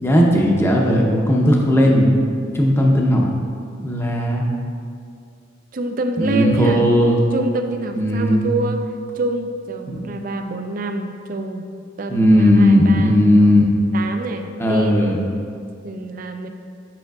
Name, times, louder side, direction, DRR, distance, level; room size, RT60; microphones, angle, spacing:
voice 1, 0.0-2.1 2.5-3.2 3.8-4.5 6.2-7.2 7.9-8.5 9.9-10.1 12.1-13.6 14.6-15.2, equal, 10° left, -1 dB, 0.6 m, -16 dB
voice 2, 5.7-6.9 7.3-8.8 9.1-11.6 12.0-13.2 13.9-15.1 15.8-16.5, right 2 dB, 45° right, 6 dB, 0.4 m, -26 dB
8.8 x 5.7 x 2.3 m, 2.3 s
head